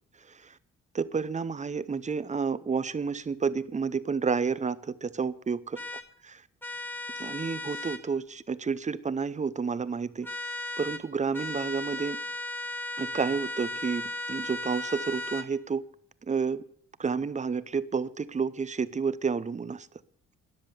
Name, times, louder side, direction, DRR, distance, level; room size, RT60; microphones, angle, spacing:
voice 1, 0.3-0.6 0.9-5.8 7.2-10.3 10.8-12.2 13.0-15.9 16.2-16.6 17.0-19.9, right 5 dB, 25° right, 17 dB, 0.7 m, -30 dB
sound 1, 5.8-6.0 6.6-8.0 10.2-11.0 11.3-15.5, left 2 dB, 5° left, 1.2 m, -36 dB
13.0 x 10.0 x 6.8 m, 0.65 s
cardioid pair, 90°, 30 cm